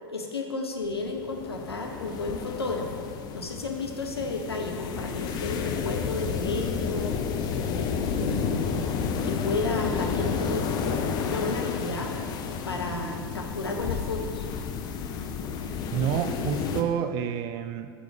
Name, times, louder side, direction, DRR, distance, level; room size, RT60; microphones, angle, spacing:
voice 1, 0.0-2.9 3.3-7.1 7.5-8.8 9.2-12.1 12.7-14.4, left 3 dB, 80° left, 2 dB, 0.6 m, -32 dB
sound 1, 0.8-16.8, left 6 dB, 30° left, 0.5 m, -31 dB
voice 2, 15.9-17.9, right 8 dB, 35° right, 10 dB, 0.4 m, -28 dB
5.2 x 4.6 x 5.0 m, 2.2 s
figure-of-eight pair, 90°, 13 cm